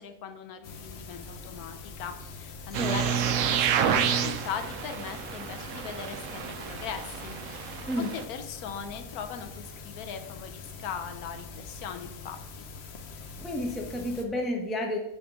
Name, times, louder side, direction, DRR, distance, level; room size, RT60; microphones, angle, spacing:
voice 1, 0.0-12.4, left 7 dB, 75° left, 7 dB, 1.2 m, -40 dB
sound 1, 0.6-14.2, left 4 dB, 55° left, 0.8 m, -44 dB
sound 2, 2.7-8.2, right 8 dB, 65° right, 0.9 m, -29 dB
voice 2, 13.4-15.0, left 1 dB, ahead, 1 dB, 0.6 m, -31 dB
7.2 x 3.6 x 5.1 m, 0.90 s
omnidirectional pair, 1.6 m